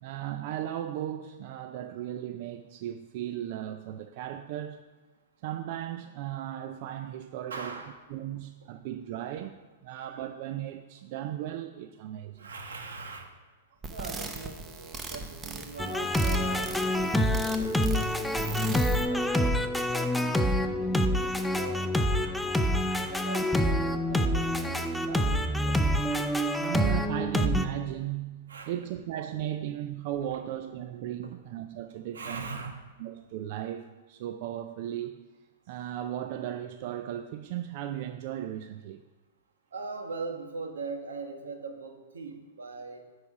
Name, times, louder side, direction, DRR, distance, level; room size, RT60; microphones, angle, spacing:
voice 1, 0.0-4.8 5.4-7.8 8.1-12.5 26.6-32.5 33.0-35.1 35.7-39.0, right 11 dB, 55° right, 0.4 m, -36 dB
voice 2, 7.5-8.1 12.3-13.3 13.9-20.2 20.6-25.3 25.6-25.8 28.5-28.7 32.1-32.7 39.7-43.0, right 4 dB, 90° right, 1.4 m, -41 dB
sound 1, 13.8-19.0, right 4 dB, 20° right, 0.8 m, -39 dB
sound 2, 15.8-27.7, equal, ahead, 0.5 m, -27 dB
9.4 x 4.8 x 4.9 m
hypercardioid pair, 125°, 0 cm